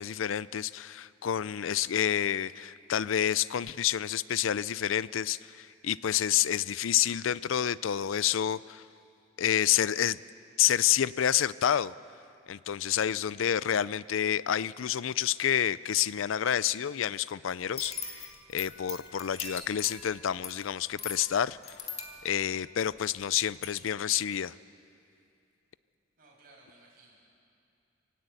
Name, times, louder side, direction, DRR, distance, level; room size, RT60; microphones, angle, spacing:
voice 1, 0.0-8.8 9.4-10.2 10.6-11.9 12.5-21.8 22.2-24.5, left 10 dB, 85° left, 19 dB, 0.4 m, -29 dB
sound 1, 17.6-23.3 23.6-23.7, left 5 dB, 35° left, 2.0 m, -41 dB
voice 2, 26.2-27.3, right 2 dB, 50° right, -3 dB, 6.6 m, -58 dB
24.5 x 18.0 x 8.3 m, 2.6 s
head